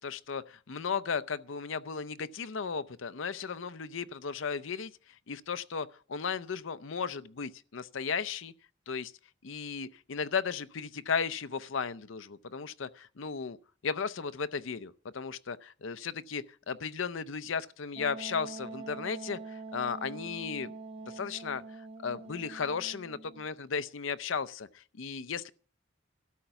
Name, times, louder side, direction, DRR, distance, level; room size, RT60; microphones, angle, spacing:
voice 1, 0.0-4.9 5.3-8.5 8.9-9.1 9.4-13.6 13.8-20.7 21.0-21.6 22.0-25.5, left 5 dB, 75° left, 0.6 m, -35 dB
Wind instrument woodwind instrument, 18.0-23.5, right 3 dB, 30° right, 0.5 m, -44 dB
13.0 x 5.8 x 8.0 m
head